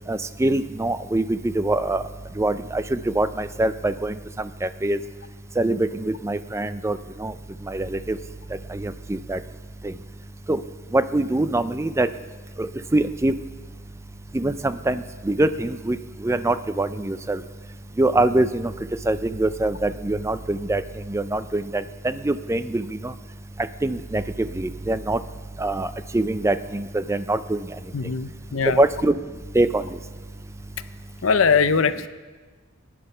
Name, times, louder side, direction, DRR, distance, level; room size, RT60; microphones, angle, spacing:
voice 1, 0.1-2.0 2.4-4.1 4.6-5.0 5.6-7.3 7.7-8.2 8.7-9.4 10.5-10.6 10.9-12.1 12.6-12.7 12.9-13.3 14.3-16.0 16.2-17.4 18.0-18.7 19.1-20.8 21.1-23.1 23.8-24.2 24.6-25.2 25.6-25.9 26.1-27.6 28.8-29.1 29.5-29.8, right 2 dB, 15° right, 12 dB, 0.4 m, -23 dB
voice 2, 27.9-28.8 31.2-32.1, left 5 dB, 70° left, 12 dB, 0.6 m, -21 dB
17.0 x 10.0 x 5.5 m, 1.4 s
head